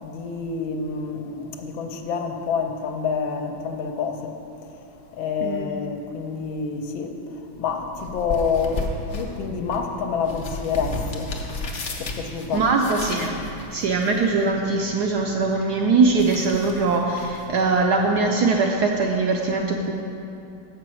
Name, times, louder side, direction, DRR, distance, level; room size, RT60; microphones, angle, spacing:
voice 1, 0.0-4.7 5.1-11.3 12.0-12.7, left 5 dB, 80° left, 4 dB, 1.5 m, -28 dB
voice 2, 5.4-5.8 12.5-13.4 13.7-19.9, right 3 dB, 75° right, 1 dB, 0.9 m, -21 dB
sound 1, 7.5-18.5, left 2 dB, 60° left, 0.7 m, -35 dB
7.7 x 5.9 x 6.2 m, 2.7 s
omnidirectional pair, 2.2 m